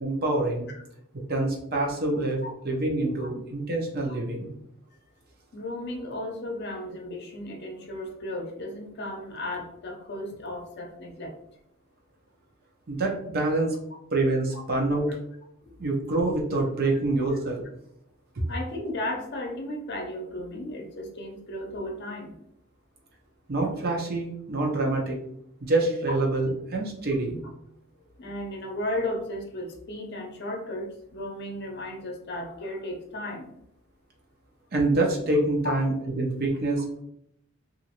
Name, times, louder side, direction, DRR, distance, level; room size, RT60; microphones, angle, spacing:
voice 1, 0.0-0.7 1.1-4.5 12.9-13.8 14.1-15.2 15.8-17.7 23.5-25.2 25.6-27.4 34.7-37.0, right 2 dB, 50° right, 0 dB, 0.8 m, -26 dB
voice 2, 5.5-11.3 14.5-14.6 15.6-15.8 16.9-17.3 18.5-22.3 26.1-26.2 28.2-33.5 35.6-35.7, left 1 dB, 55° left, 1 dB, 0.7 m, -35 dB
3.0 x 2.6 x 2.9 m, 0.74 s
head